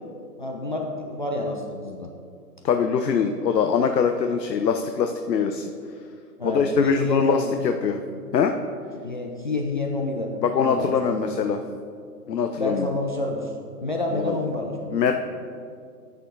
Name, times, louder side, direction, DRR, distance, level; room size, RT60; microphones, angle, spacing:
voice 1, 0.4-2.1 6.4-7.5 9.0-10.3 10.6-11.2 12.6-13.5 13.8-15.0, left 2 dB, 35° left, 0 dB, 0.4 m, -28 dB
voice 2, 2.6-5.7 6.4-7.4 7.6-8.0 8.3-8.5 10.4-11.6 12.3-12.9 14.1-14.3 14.9-15.1, left 6 dB, 85° left, 6 dB, 0.6 m, -23 dB
10.5 x 6.2 x 2.5 m, 2.3 s
figure-of-eight pair, 135°, 48 cm